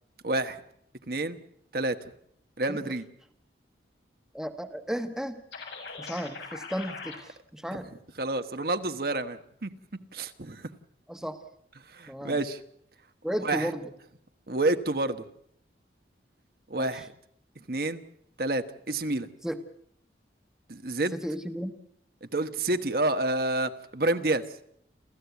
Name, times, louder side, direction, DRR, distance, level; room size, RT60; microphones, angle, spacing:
voice 1, 0.2-0.6 1.1-1.4 1.7-2.0 2.6-3.0 7.7-7.8 8.2-9.7 10.1-10.6 11.9-12.6 13.4-13.7 14.5-15.2 16.7-17.1 17.7-18.0 18.4-19.3 20.7-21.2 22.3-24.4, right 2 dB, 55° right, 8 dB, 1.2 m, -28 dB
voice 2, 4.3-5.4 6.0-7.9 11.1-11.4 12.1-12.4 13.2-13.9 16.8-16.9 19.4-19.6 21.1-21.7, equal, 5° right, 7 dB, 1.3 m, -34 dB
sound 1, 5.5-7.2, left 4 dB, 85° left, 7.0 m, -40 dB
29.0 x 14.5 x 8.3 m, 0.69 s
head